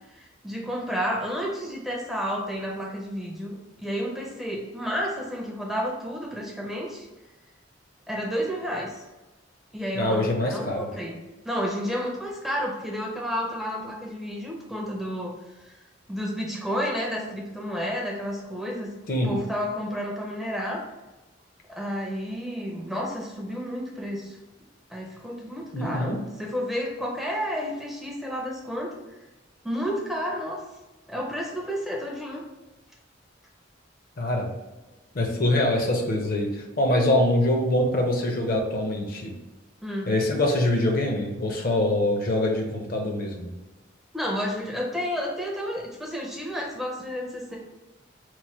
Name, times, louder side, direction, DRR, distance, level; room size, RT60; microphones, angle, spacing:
voice 1, 0.1-7.1 8.1-9.0 9.7-11.2 11.4-15.7 16.1-18.9 19.2-20.8 21.7-24.4 24.9-28.9 29.6-30.6 31.1-32.4 39.8-40.1 44.1-47.6, equal, ahead, -2 dB, 0.4 m, -31 dB
voice 2, 9.9-10.9 19.1-19.4 25.7-26.2 34.2-34.5 35.1-39.3 40.1-43.5, left 1 dB, 50° left, 2 dB, 0.6 m, -24 dB
3.0 x 2.1 x 4.2 m, 1.1 s
head